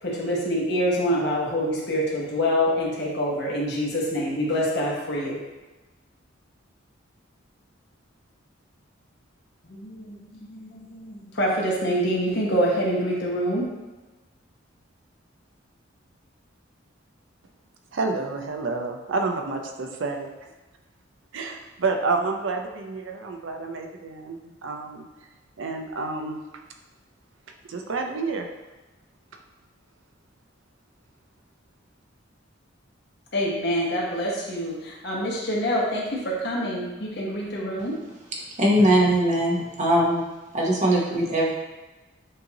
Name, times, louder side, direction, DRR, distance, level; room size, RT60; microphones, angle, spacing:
voice 1, 0.0-5.4 9.6-13.7 33.3-37.9, equal, 60° left, -4 dB, 1.2 m, -26 dB
voice 2, 17.9-20.5 21.3-25.1 25.6-26.4 27.7-28.5, right 3 dB, 75° right, 4 dB, 0.6 m, -29 dB
voice 3, 38.6-40.2 40.5-41.5, right 1 dB, 40° right, -3 dB, 0.9 m, -20 dB
6.6 x 2.7 x 2.9 m, 1.2 s
head